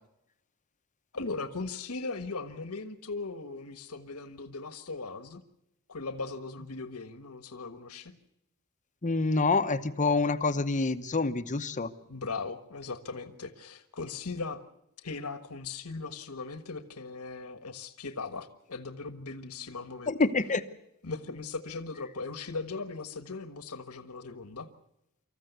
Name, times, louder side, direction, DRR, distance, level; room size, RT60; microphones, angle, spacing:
voice 1, 1.1-5.4 5.9-8.1 12.1-14.6 15.0-20.1 21.0-24.7, left 3 dB, 75° left, 11 dB, 1.4 m, -38 dB
voice 2, 9.0-11.9 20.1-20.6, left 3 dB, 35° left, 11 dB, 0.9 m, -27 dB
26.0 x 14.5 x 8.1 m, 0.82 s
head